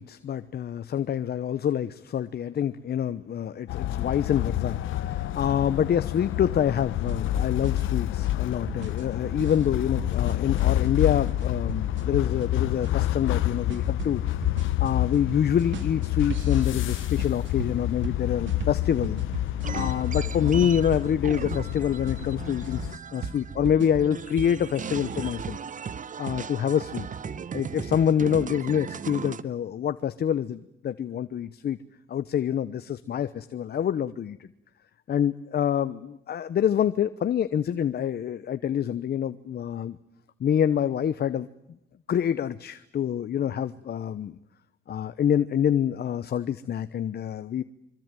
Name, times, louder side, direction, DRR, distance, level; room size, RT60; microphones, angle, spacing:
voice 1, 0.0-14.5 14.8-19.2 19.7-25.6 26.2-27.1 27.5-31.8 32.1-34.5 35.1-40.0 40.4-41.5 42.1-44.4 44.9-47.6, left 9 dB, 55° left, 13 dB, 1.0 m, -26 dB
sound 1, 3.7-23.0, left 14 dB, 80° left, 0.9 m, -28 dB
sound 2, 7.1-21.6 22.1-25.5, right 5 dB, 70° right, 2.6 m, -39 dB
sound 3, 19.6-23.7 24.0-29.4, right 6 dB, 40° right, 1.0 m, -37 dB
25.0 x 24.0 x 9.1 m, 0.81 s
cardioid pair, 90°, 20 cm